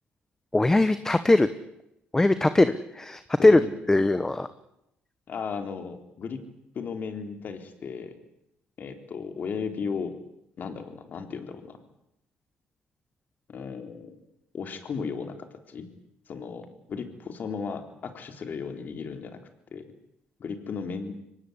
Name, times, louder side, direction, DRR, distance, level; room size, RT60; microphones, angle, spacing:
voice 1, 0.5-1.5 2.1-3.6 3.9-4.5, left 2 dB, 15° left, 12 dB, 1.2 m, -20 dB
voice 2, 3.4-3.7 5.3-6.5 6.7-8.2 8.8-10.2 10.6-11.8 13.5-14.2 14.5-15.4 15.7-15.9 16.3-19.4 19.7-19.8 20.4-21.1, left 5 dB, 50° left, 7 dB, 3.9 m, -35 dB
24.0 x 18.5 x 9.8 m, 0.82 s
cardioid pair, 95°, 4 cm